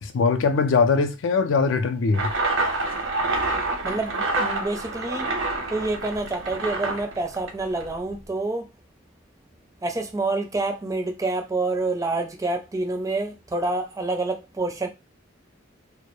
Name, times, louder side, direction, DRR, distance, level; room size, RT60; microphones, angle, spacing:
voice 1, 0.0-2.3, left 4 dB, 75° left, 0.4 m, -21 dB
sound 1, 2.1-8.0, right 2 dB, 70° right, 0.7 m, -27 dB
voice 2, 3.8-5.3 5.7-8.7 9.8-14.9, right 2 dB, 15° right, 0.4 m, -27 dB
2.2 x 2.0 x 2.9 m
head